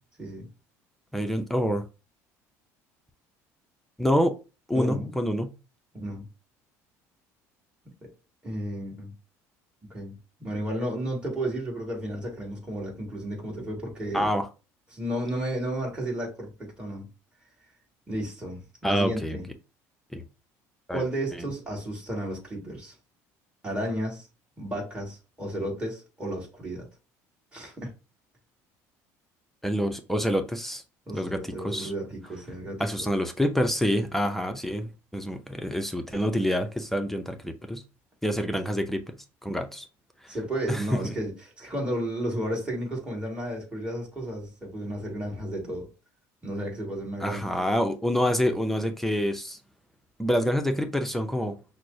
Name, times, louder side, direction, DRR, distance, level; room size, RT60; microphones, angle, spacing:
voice 1, 1.1-1.8 4.0-4.3 4.7-5.5 14.1-14.5 18.8-19.4 20.1-20.2 20.9-21.0 29.6-30.8 31.1-31.9 32.8-37.8 38.2-39.2 39.4-39.8 40.7-41.1 47.2-49.6 50.2-51.5, equal, 5° left, 0.6 m, -27 dB
voice 2, 4.7-5.1 5.9-6.3 8.4-9.1 9.9-10.1 10.4-14.3 14.9-17.1 18.1-19.4 20.9-22.9 23.6-24.3 24.6-26.9 27.5-27.9 31.1-33.1 38.3-38.6 40.3-45.9 46.4-47.7, right 1 dB, 15° right, 2.0 m, -33 dB
5.9 x 2.1 x 2.7 m
supercardioid pair, 85°, 7 cm